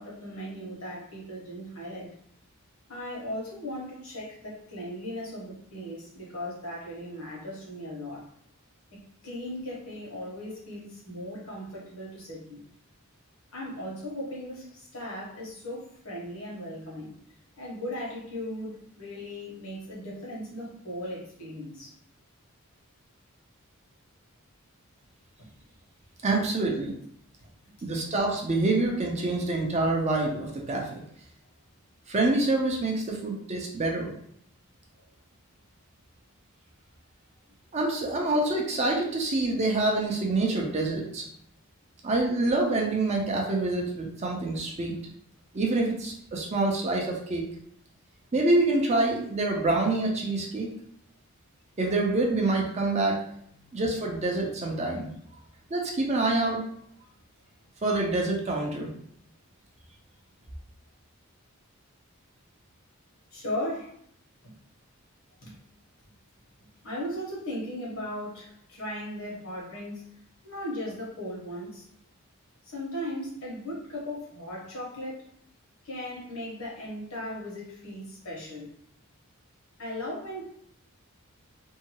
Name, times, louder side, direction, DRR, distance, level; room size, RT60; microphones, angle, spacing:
voice 1, 0.0-2.1 2.9-8.3 8.9-12.6 13.5-17.2 17.6-21.9 26.3-26.4 53.6-53.7 63.3-63.9 65.4-65.5 66.8-70.1 70.4-71.9 72.6-75.3 75.8-78.7 79.8-80.5, left 1 dB, 70° left, -4 dB, 1.1 m, -37 dB
voice 2, 26.2-26.9 27.9-31.0 32.1-34.1 37.7-41.2 42.0-44.9 45.5-47.5 48.3-50.7 51.8-53.2 53.7-55.1 55.7-56.6 57.8-58.9, right 2 dB, 30° right, 0 dB, 0.5 m, -26 dB
2.7 x 2.3 x 2.9 m, 0.68 s
head